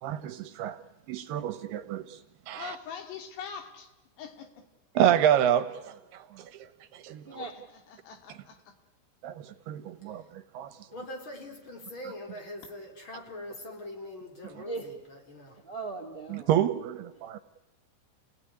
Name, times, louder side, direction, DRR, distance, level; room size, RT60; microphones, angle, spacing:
voice 1, 0.0-0.8 1.1-2.2 2.5-2.8 4.9-6.7 6.9-7.4 9.2-10.7 14.6-14.7 16.3-17.4, right 10 dB, 75° right, 10 dB, 2.8 m, -28 dB
voice 2, 2.5-3.9 4.2-4.6 7.5-8.8, left 7 dB, 75° left, 6 dB, 4.4 m, -43 dB
voice 3, 7.2-7.6 14.6-14.9 15.6-16.5, right 3 dB, 45° right, 7 dB, 0.7 m, -38 dB
voice 4, 10.9-15.6, left 1 dB, 30° left, 3 dB, 4.3 m, -42 dB
29.0 x 18.0 x 9.9 m, 1.0 s
omnidirectional pair, 5.0 m